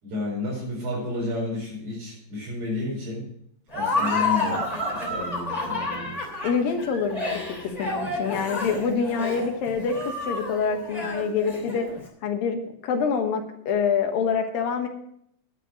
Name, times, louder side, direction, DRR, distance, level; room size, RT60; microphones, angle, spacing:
voice 1, 0.0-3.3 3.7-6.2, left 2 dB, 70° right, -6 dB, 6.6 m, -31 dB
Laughter, 3.7-12.0, left 2 dB, 10° left, 2.5 m, -29 dB
voice 2, 6.4-11.9 12.2-14.9, left 6 dB, 65° left, 4 dB, 2.7 m, -26 dB
10.0 x 9.7 x 6.3 m, 0.71 s
omnidirectional pair, 4.8 m